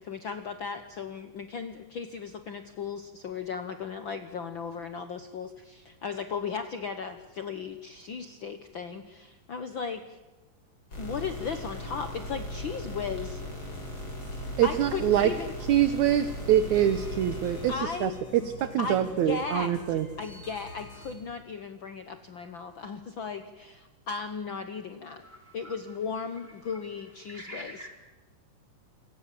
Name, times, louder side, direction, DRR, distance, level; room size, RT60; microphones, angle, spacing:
voice 1, 0.0-10.2 11.0-13.4 14.6-15.5 17.7-25.2 25.5-27.9, left 6 dB, 80° left, 9 dB, 1.0 m, -36 dB
sound 1, 10.9-17.8, left 1 dB, 35° left, 8.1 m, -38 dB
sound 2, 13.7-21.1, equal, 55° left, 6.3 m, -46 dB
voice 2, 14.6-15.3 15.7-20.1, right 11 dB, 70° right, 11 dB, 2.2 m, -25 dB
voice 3, 25.2-25.8 26.7-26.8 27.3-27.9, equal, 15° right, 3 dB, 3.5 m, -44 dB
28.0 x 25.5 x 7.6 m, 1.2 s
omnidirectional pair, 3.8 m